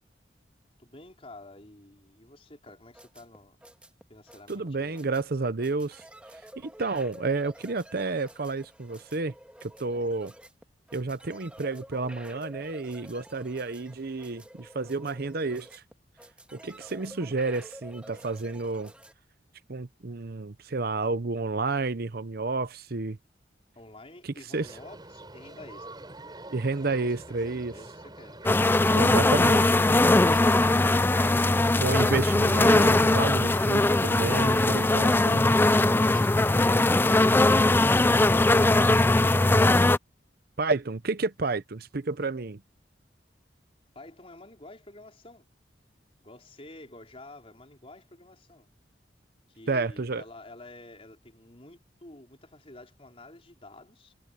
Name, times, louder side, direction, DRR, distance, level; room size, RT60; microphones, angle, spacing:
voice 1, 0.8-3.6 4.1-5.0 23.7-26.1 26.9-27.2 27.4-28.4 43.9-45.4 46.2-48.7 49.5-54.1, left 2 dB, 35° left, 4.4 m, -50 dB
sound 1, 2.7-19.1, right 1 dB, 5° right, 1.7 m, -49 dB
voice 2, 4.5-6.0 6.6-9.3 9.6-10.3 10.9-15.8 16.5-18.9 19.7-23.2 24.2-24.7 26.5-27.7 28.9-29.8 31.8-35.5 40.6-42.6 49.7-50.2, right 3 dB, 55° right, 0.8 m, -30 dB
sound 2, 24.5-36.8, right 2 dB, 25° right, 5.1 m, -47 dB
sound 3, 28.5-40.0, left 2 dB, 10° left, 0.4 m, -21 dB
head